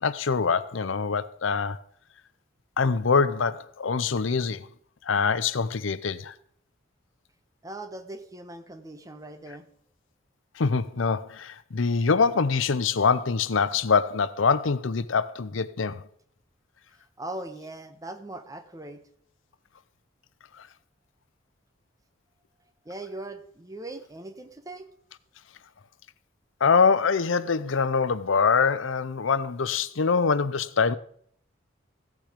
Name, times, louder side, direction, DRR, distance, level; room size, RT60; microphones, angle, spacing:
voice 1, 0.0-1.8 2.8-4.7 5.1-6.3 10.6-16.0 26.6-31.0, left 5 dB, 85° left, 0.7 m, -24 dB
voice 2, 7.6-9.7 17.2-19.0 22.8-24.9, right 2 dB, 20° right, 1.1 m, -40 dB
15.5 x 9.0 x 5.1 m
head